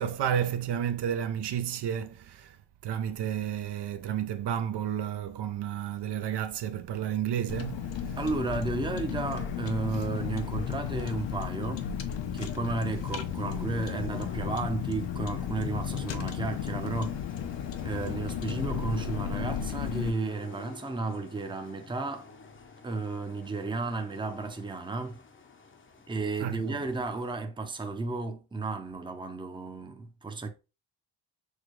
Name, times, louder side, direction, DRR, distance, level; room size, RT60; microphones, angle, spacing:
voice 1, 0.0-2.6 2.8-8.2 26.4-26.8, right 9 dB, 60° right, 0.6 m, -31 dB
Car, 7.5-20.1, left 8 dB, 70° left, 0.8 m, -34 dB
voice 2, 8.2-11.9 12.3-17.2 17.8-22.3 22.8-25.2 26.1-30.5, right 3 dB, 10° right, 0.6 m, -33 dB
sound 1, 9.1-27.4, left 4 dB, 25° left, 0.7 m, -50 dB
6.4 x 2.3 x 3.1 m
cardioid pair, 100°, 45 cm